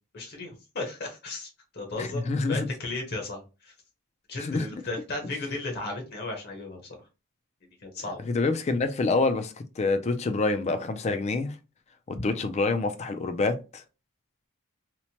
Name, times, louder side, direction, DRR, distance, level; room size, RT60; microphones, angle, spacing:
voice 1, 0.1-3.7 4.3-7.0 7.8-8.2 12.1-12.3, left 2 dB, 50° left, 0.8 m, -35 dB
voice 2, 2.0-2.7 4.4-4.7 8.3-11.6 12.1-13.8, left 3 dB, 30° left, 0.3 m, -27 dB
2.9 x 2.1 x 2.7 m
head